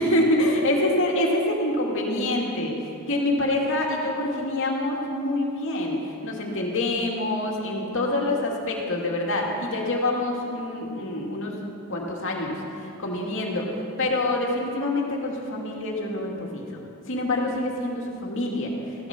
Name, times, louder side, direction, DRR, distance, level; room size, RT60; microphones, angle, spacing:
voice 1, 0.0-11.5 11.9-16.7 17.0-19.1, left 1 dB, 60° left, -1 dB, 2.3 m, -26 dB
15.0 x 12.5 x 6.0 m, 2.8 s
head